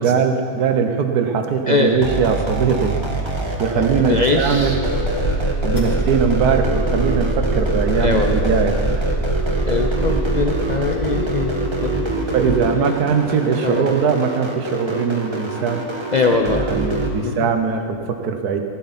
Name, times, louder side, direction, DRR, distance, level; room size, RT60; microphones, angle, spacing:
voice 1, 0.0-2.9 3.6-4.7 5.6-8.7 12.3-15.8 16.7-18.6, right 6 dB, 80° right, 6 dB, 1.5 m, -20 dB
sound 1, 1.9-17.1, right 2 dB, 20° right, 1.1 m, -24 dB
voice 2, 3.7-4.8 5.7-6.0 7.9-8.5 9.5-11.6 11.8-12.2 12.7-13.0 13.6-13.9 16.1-16.7 17.2-17.5, left 4 dB, 70° left, 3 dB, 0.4 m, -22 dB
sound 2, 4.2-11.6, right 2 dB, 50° left, 3.0 m, -25 dB
15.5 x 11.5 x 4.2 m, 2.4 s
omnidirectional pair, 1.6 m